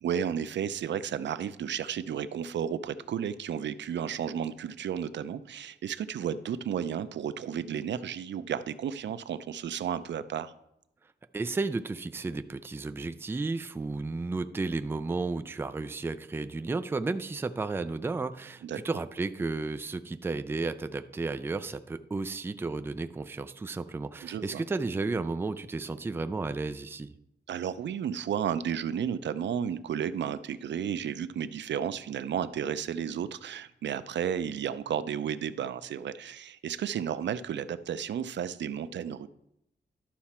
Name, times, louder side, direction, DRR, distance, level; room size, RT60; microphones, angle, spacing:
voice 1, 0.0-10.5 18.6-18.8 24.2-24.6 27.5-39.3, right 8 dB, 90° right, 13 dB, 0.5 m, -33 dB
voice 2, 11.3-27.1, right 3 dB, 15° right, 10 dB, 0.3 m, -33 dB
12.0 x 5.8 x 4.2 m, 0.80 s
wide cardioid pair, 180°, 18 cm